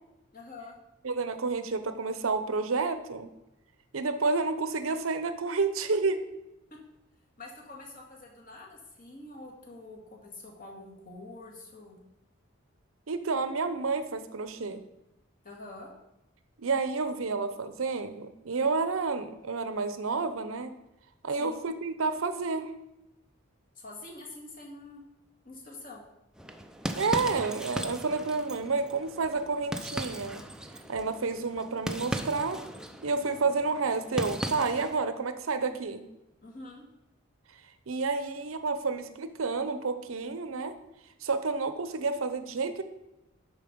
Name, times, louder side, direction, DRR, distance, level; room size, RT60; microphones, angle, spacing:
voice 1, 0.3-0.8 7.4-12.0 15.4-15.9 21.4-21.6 23.8-25.0 25.4-26.0 36.4-36.8, left 2 dB, 45° left, -1 dB, 2.0 m, -46 dB
voice 2, 1.0-3.3 3.9-6.2 13.1-14.8 16.6-20.7 21.2-22.7 26.9-30.4 30.9-32.6 33.0-36.0 37.9-40.7 41.2-42.8, right 4 dB, 85° right, 10 dB, 0.7 m, -30 dB
sound 1, 26.4-35.0, right 1 dB, 5° right, 0.4 m, -37 dB
11.5 x 4.3 x 5.2 m, 0.93 s
head